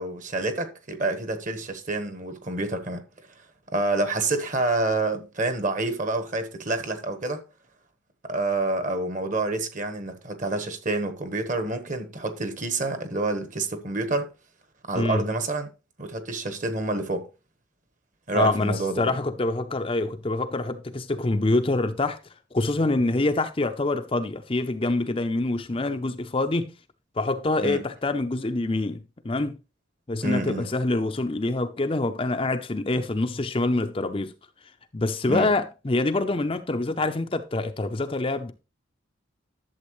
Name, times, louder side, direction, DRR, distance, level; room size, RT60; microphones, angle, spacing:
voice 1, 0.0-3.0 3.7-7.4 8.2-14.3 14.9-15.7 16.0-17.2 18.3-19.1 27.6-27.8 30.2-30.7 35.3-35.5, right 2 dB, 40° right, 1.2 m, -28 dB
voice 2, 14.9-15.3 18.3-22.2 22.5-26.7 27.2-29.6 30.1-34.3 34.9-38.5, left 2 dB, 25° left, 0.5 m, -25 dB
11.5 x 7.2 x 3.1 m
head